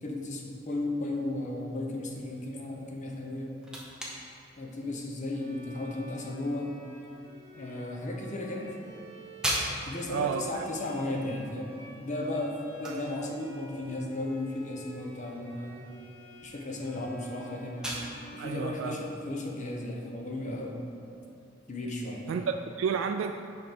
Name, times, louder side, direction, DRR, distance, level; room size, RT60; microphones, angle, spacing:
voice 1, 0.0-3.6 4.6-6.7 7.5-8.7 9.8-11.7 12.0-15.8 16.4-17.9 18.3-20.8 21.7-22.5, left 1 dB, 40° left, 0 dB, 0.9 m, -35 dB
sound 1, 3.1-20.7, right 1 dB, 5° right, 1.0 m, -42 dB
Bowed string instrument, 5.3-19.5, equal, 15° left, 1.3 m, -51 dB
voice 2, 10.1-10.6 12.8-13.0 18.4-19.0 22.3-23.3, right 6 dB, 80° right, 6 dB, 0.3 m, -31 dB
5.5 x 5.2 x 5.9 m, 2.6 s
head